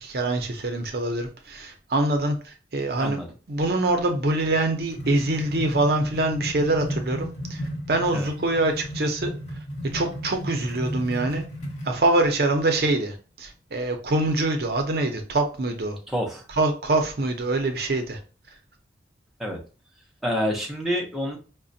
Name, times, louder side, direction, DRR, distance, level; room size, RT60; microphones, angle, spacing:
voice 1, 0.0-9.3 9.9-11.5 11.8-16.0 16.6-18.2, right 2 dB, 55° right, 0.6 m, -24 dB
sound 1, 4.5-12.0, equal, 40° left, 1.0 m, -34 dB
voice 2, 16.1-16.4 19.4-19.6 20.2-21.4, equal, ahead, 0.6 m, -27 dB
4.9 x 2.1 x 2.6 m
head